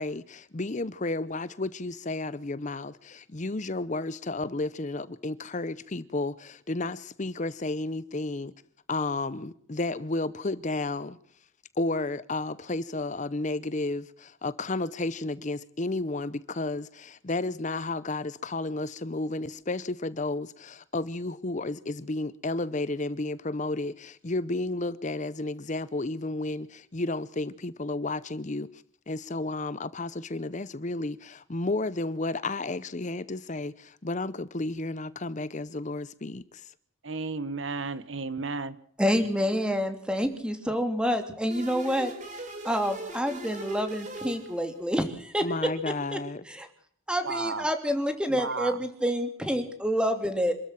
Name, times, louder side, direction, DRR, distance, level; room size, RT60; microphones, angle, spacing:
voice 1, 0.0-8.5 8.9-11.2 11.8-36.7 45.4-46.4, left 2 dB, 35° left, 0.7 m, -32 dB
voice 2, 37.0-38.8 47.2-47.6 48.3-48.8, right 4 dB, 65° right, 1.3 m, -33 dB
voice 3, 39.0-46.2 46.5-46.7 47.1-50.5, equal, 5° right, 2.9 m, -28 dB
sound 1, 41.5-45.1, right 1 dB, 35° right, 5.0 m, -40 dB
27.0 x 13.5 x 7.5 m
head